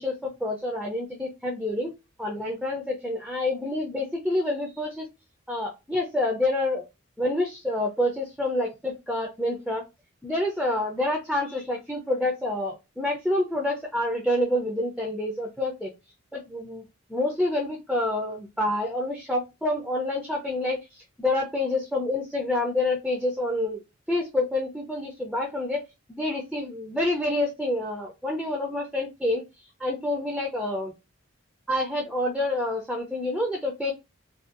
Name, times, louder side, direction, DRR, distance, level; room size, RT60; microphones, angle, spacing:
voice 1, 0.0-1.9 2.2-5.1 5.5-6.9 7.2-9.8 10.2-15.9 16.3-16.8 17.1-25.8 26.1-29.4 29.8-30.9 31.7-33.9, left 1 dB, ahead, -1 dB, 0.4 m, -28 dB
2.5 x 2.2 x 2.4 m, 0.25 s
head